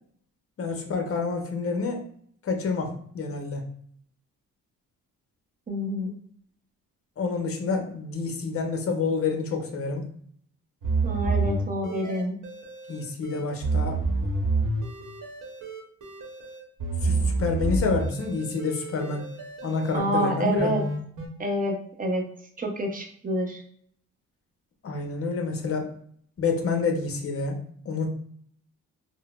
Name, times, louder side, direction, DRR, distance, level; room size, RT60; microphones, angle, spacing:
voice 1, 0.6-2.1 2.4-3.6 7.2-10.0 12.9-14.0 17.0-19.2 19.6-20.7 24.8-25.9 26.4-27.6 27.9-28.1, left 4 dB, 40° left, 3 dB, 0.7 m, -28 dB
voice 2, 5.7-6.1 11.0-12.4 19.9-20.8 21.4-22.2 22.6-23.6, right 1 dB, 25° right, 2 dB, 0.7 m, -28 dB
sound 1, 10.8-21.3, right 3 dB, 60° right, 0.9 m, -29 dB
3.8 x 2.0 x 2.3 m, 0.62 s
cardioid pair, 100°, 34 cm